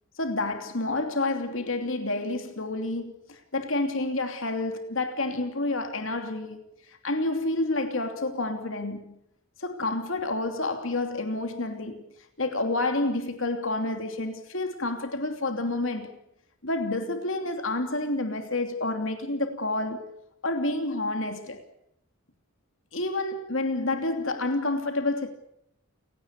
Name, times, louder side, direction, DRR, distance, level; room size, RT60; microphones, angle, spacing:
voice 1, 0.2-6.6 6.9-9.1 9.6-12.0 12.4-16.1 16.6-20.2 20.4-21.6 22.9-25.3, left 2 dB, 65° left, 2.9 m, -29 dB
30.0 x 17.5 x 8.3 m
head